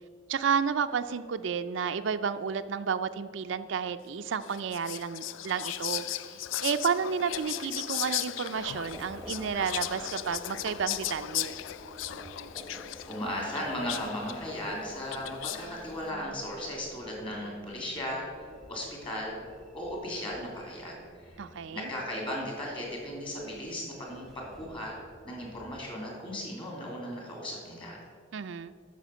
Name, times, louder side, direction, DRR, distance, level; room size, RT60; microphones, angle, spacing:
voice 1, 0.3-6.0 6.6-11.6 21.4-21.9 28.3-28.7, right 6 dB, 70° right, 10 dB, 0.4 m, -31 dB
Whispering, 4.4-15.8, left 12 dB, 70° left, 0.3 m, -37 dB
Subway metro underground, 8.6-25.8, equal, 5° left, 1.0 m, -50 dB
voice 2, 13.1-19.4 19.7-21.4 21.7-25.0 25.2-28.0, left 1 dB, 25° left, -2 dB, 3.0 m, -36 dB
9.3 x 6.9 x 6.5 m, 2.1 s
head